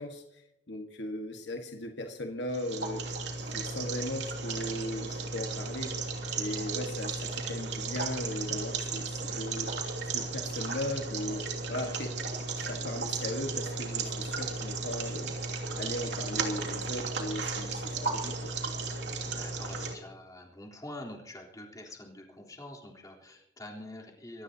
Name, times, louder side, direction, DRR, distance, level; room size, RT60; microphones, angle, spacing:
voice 1, 0.0-5.9 6.4-9.7 10.1-12.1 12.6-15.4 15.7-18.5, left 1 dB, 70° left, 4 dB, 1.6 m, -38 dB
sound 1, 2.5-19.9, right 4 dB, 65° right, 3.1 m, -35 dB
voice 2, 18.9-24.4, left 1 dB, 20° left, -2 dB, 3.7 m, -46 dB
24.5 x 18.0 x 2.9 m, 0.85 s
head